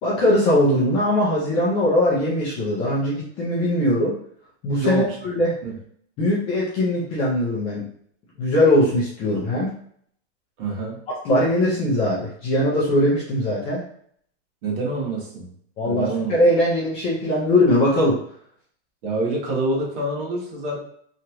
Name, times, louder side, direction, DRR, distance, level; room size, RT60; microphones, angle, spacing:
voice 1, 0.0-4.1 4.6-5.5 6.2-7.8 8.4-9.7 11.2-13.8 15.8-18.2, left 1 dB, 20° left, -6 dB, 0.4 m, -20 dB
voice 2, 4.8-5.7 10.6-11.0 14.6-15.5 15.8-16.3 19.0-20.8, right 2 dB, 55° right, -3 dB, 1.3 m, -26 dB
3.0 x 2.3 x 2.8 m, 0.63 s
supercardioid pair, 160°, 33 cm